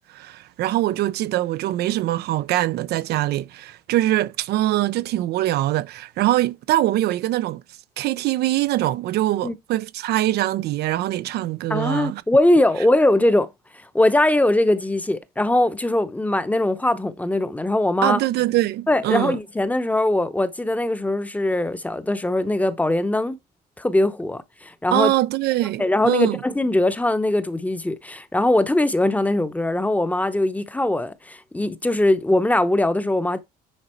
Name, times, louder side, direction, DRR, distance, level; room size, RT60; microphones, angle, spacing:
voice 1, 0.1-7.6 8.0-12.2 18.0-19.4 24.9-26.4, right 15 dB, 75° right, 0.5 m, -23 dB
voice 2, 11.7-18.2 18.9-23.4 23.8-25.1 25.8-33.4, left 1 dB, 10° left, 0.8 m, -21 dB
9.9 x 4.0 x 4.4 m
cardioid pair, 110°, 17 cm